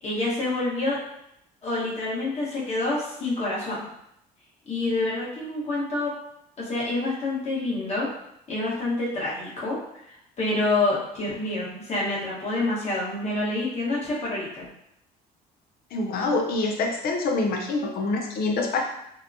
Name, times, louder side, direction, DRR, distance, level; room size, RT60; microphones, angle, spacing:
voice 1, 0.0-1.0 1.6-3.8 4.7-6.1 6.6-8.1 8.5-14.7, left 2 dB, 40° left, -6 dB, 1.1 m, -27 dB
voice 2, 15.9-18.8, left 3 dB, 65° left, 2 dB, 0.5 m, -26 dB
2.8 x 2.1 x 2.6 m, 0.78 s
cardioid pair, 110°, 17 cm